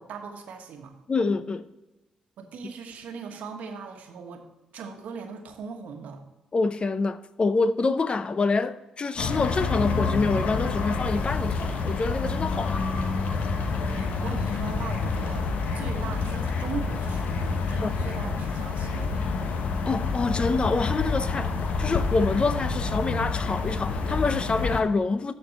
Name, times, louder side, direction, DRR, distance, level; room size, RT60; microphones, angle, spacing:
voice 1, 0.0-0.9 2.4-4.4 4.7-6.2 13.6-15.5 15.7-19.3, right 5 dB, 75° right, 1.2 m, -39 dB
voice 2, 1.1-1.7 6.5-12.9 17.8-17.9 19.9-25.3, left 3 dB, 40° left, 0.6 m, -26 dB
sound 1, 9.2-24.8, left 4 dB, 70° left, 1.0 m, -28 dB
13.0 x 4.5 x 4.2 m
supercardioid pair, 50°, 3 cm